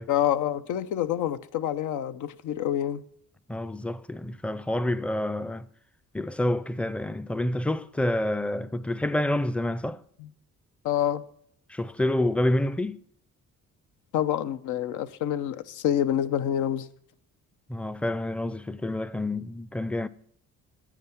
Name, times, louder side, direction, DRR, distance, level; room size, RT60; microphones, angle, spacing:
voice 1, 0.1-3.0 10.2-10.3 10.8-11.2 14.1-16.9, left 10 dB, 85° left, 0.8 m, -27 dB
voice 2, 3.5-5.7 6.1-10.0 11.7-13.0 17.7-20.1, left 1 dB, 5° left, 0.5 m, -28 dB
10.0 x 9.2 x 5.8 m
cardioid pair, 90°, 30 cm